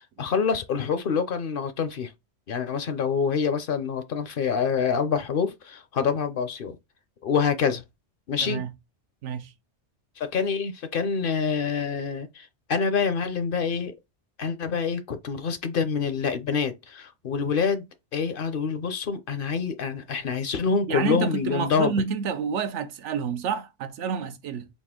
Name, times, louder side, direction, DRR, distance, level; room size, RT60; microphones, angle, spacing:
voice 1, 0.2-2.1 2.5-6.8 7.2-7.8 8.3-8.6 10.2-13.9 14.4-21.9, left 6 dB, 60° left, 0.7 m, -26 dB
voice 2, 8.4-8.7 9.2-9.5 20.9-24.7, right 6 dB, 90° right, 1.0 m, -29 dB
4.2 x 2.4 x 3.6 m
omnidirectional pair, 1.2 m